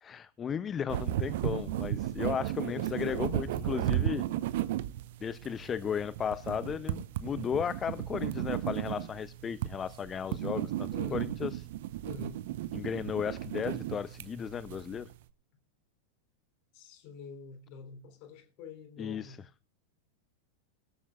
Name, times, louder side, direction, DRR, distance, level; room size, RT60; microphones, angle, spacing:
voice 1, 0.0-4.2 5.2-11.6 12.7-15.1 19.0-19.4, left 7 dB, 20° left, 0.5 m, -35 dB
sound 1, 0.9-15.2, right 13 dB, 55° right, 0.9 m, -35 dB
voice 2, 2.7-3.6 10.9-11.3 12.0-12.4 16.7-19.4, left 5 dB, 45° left, 3.4 m, -47 dB
21.0 x 13.5 x 2.4 m
figure-of-eight pair, 90°, 0 cm